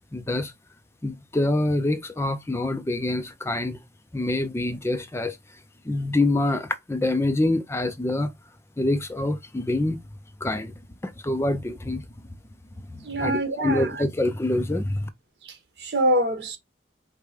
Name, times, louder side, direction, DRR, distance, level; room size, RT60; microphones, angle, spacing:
voice 1, 0.1-0.5 1.0-3.8 4.1-5.4 5.8-8.3 8.8-10.0 10.4-10.7 11.0-12.0 12.9-15.1, left 2 dB, 15° left, 0.4 m, -26 dB
voice 2, 13.0-13.9 15.4-16.6, right 1 dB, 65° right, 1.4 m, -25 dB
5.0 x 2.2 x 4.8 m
head